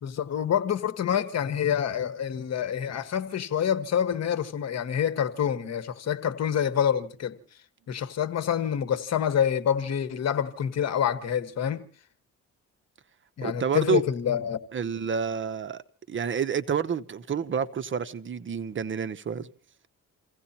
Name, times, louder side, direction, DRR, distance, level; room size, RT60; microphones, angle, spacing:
voice 1, 0.0-7.4 7.9-11.8 13.4-14.6, left 8 dB, 60° left, 1.4 m, -27 dB
voice 2, 13.4-14.0 14.7-19.5, right 7 dB, 40° right, 0.8 m, -29 dB
28.5 x 16.5 x 2.8 m
cardioid pair, 90°, 30 cm